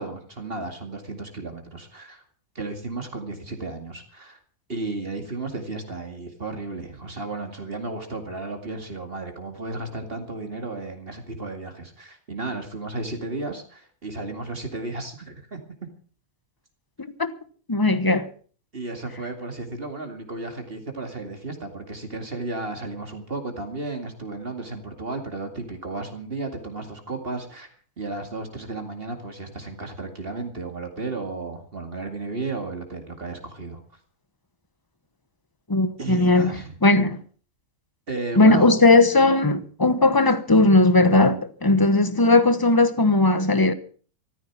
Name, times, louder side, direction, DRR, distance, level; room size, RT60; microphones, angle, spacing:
voice 1, 0.0-2.2 2.5-4.4 4.7-15.6 18.7-33.8 36.0-36.8 38.1-38.7, right 3 dB, 40° right, 2.4 m, -33 dB
voice 2, 17.0-17.3 17.7-18.3 35.7-36.5 36.8-37.2 38.4-43.7, left 2 dB, 15° left, 1.0 m, -18 dB
14.5 x 14.0 x 6.0 m
omnidirectional pair, 1.5 m